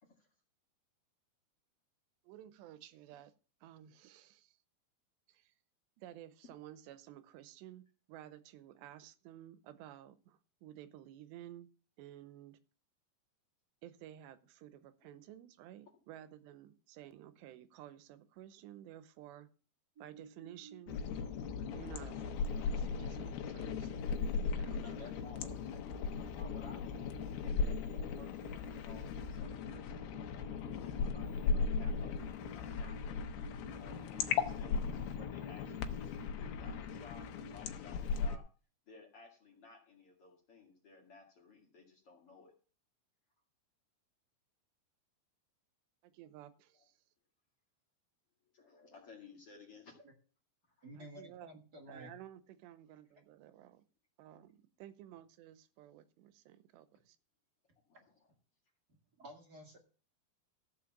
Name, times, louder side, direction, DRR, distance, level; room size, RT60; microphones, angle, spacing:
voice 1, 2.2-3.3 3.6-4.6 5.3-5.5 6.0-11.7 12.0-12.6 13.8-19.5 20.0-21.0 21.7-23.9 24.5-25.1 46.0-47.0 51.0-51.6 51.9-53.9 54.2-57.2, right 12 dB, 85° right, 3.0 m, -54 dB
sound 1, 20.0-37.6, right 6 dB, 60° right, 1.0 m, -54 dB
sound 2, 20.9-38.4, left 5 dB, 80° left, 3.0 m, -37 dB
voice 2, 24.8-25.9 26.3-32.2 32.5-33.2 33.8-38.4 38.9-42.5 48.5-49.9 50.8-50.9 57.9-58.0, left 4 dB, 45° left, 2.3 m, -57 dB
voice 3, 50.8-52.1 59.2-59.8, right 1 dB, 35° right, 1.7 m, -51 dB
14.5 x 5.3 x 7.2 m
omnidirectional pair, 4.8 m